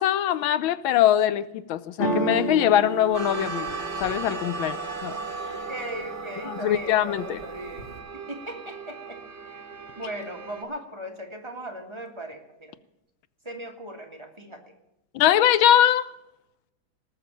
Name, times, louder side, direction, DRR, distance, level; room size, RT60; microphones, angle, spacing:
voice 1, 0.0-5.2 6.5-7.4 15.1-16.1, left 11 dB, 85° left, 15 dB, 1.5 m, -22 dB
sound 1, 2.0-5.9 6.3-6.9 7.2-8.0, right 2 dB, 35° left, 2.3 m, -32 dB
sound 2, 3.1-10.6, right 4 dB, 35° right, 3.0 m, -36 dB
voice 2, 5.4-9.7 10.0-12.7 13.4-14.7, equal, 15° right, 2 dB, 1.8 m, -38 dB
19.0 x 6.8 x 9.0 m, 0.87 s
omnidirectional pair, 2.2 m